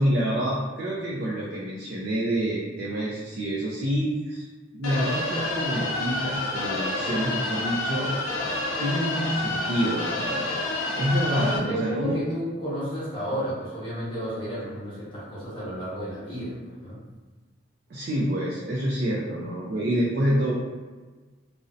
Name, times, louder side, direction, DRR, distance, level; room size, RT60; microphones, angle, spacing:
voice 1, 0.0-4.4 4.7-8.1 8.8-10.5 10.9-12.2 17.9-20.5, equal, 50° right, -5 dB, 0.3 m, -27 dB
sound 1, 4.8-11.6, left 2 dB, 85° left, 0.4 m, -29 dB
voice 2, 11.2-17.0, equal, 25° left, -10 dB, 0.9 m, -32 dB
2.4 x 2.0 x 2.5 m, 1.3 s
head